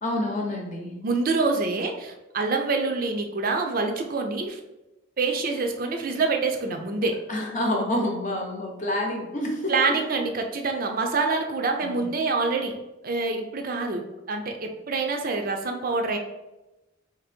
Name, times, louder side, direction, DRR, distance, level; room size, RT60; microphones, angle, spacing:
voice 1, 0.0-0.9 7.3-10.0 11.8-12.0, left 1 dB, 40° left, 0 dB, 0.8 m, -28 dB
voice 2, 1.0-4.6 5.2-7.2 9.7-12.8 13.0-16.2, right 3 dB, 45° right, 4 dB, 0.4 m, -26 dB
2.9 x 2.7 x 4.2 m, 1.0 s
head